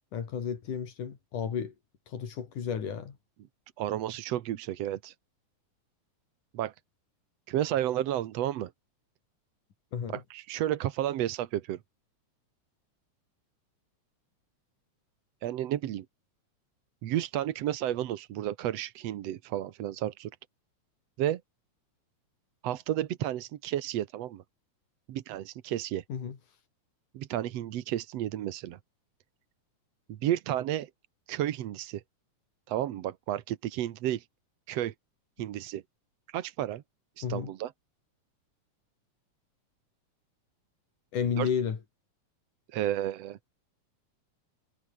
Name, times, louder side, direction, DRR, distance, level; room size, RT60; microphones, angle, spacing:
voice 1, 0.1-1.7 2.1-3.2 9.9-10.2 26.1-26.4 37.2-37.5 41.1-41.8, left 7 dB, 80° left, 4.6 m, -32 dB
voice 2, 3.8-5.2 6.5-6.8 7.5-8.7 10.1-11.8 15.4-16.1 17.0-20.3 21.2-21.4 22.6-24.4 25.1-26.0 27.1-28.8 30.1-30.9 31.3-32.0 32.7-34.3 34.7-34.9 35.4-35.8 36.3-36.8 37.2-37.7 41.4-41.5 42.7-43.4, right 12 dB, 65° right, 2.0 m, -32 dB
omnidirectional pair, 3.5 m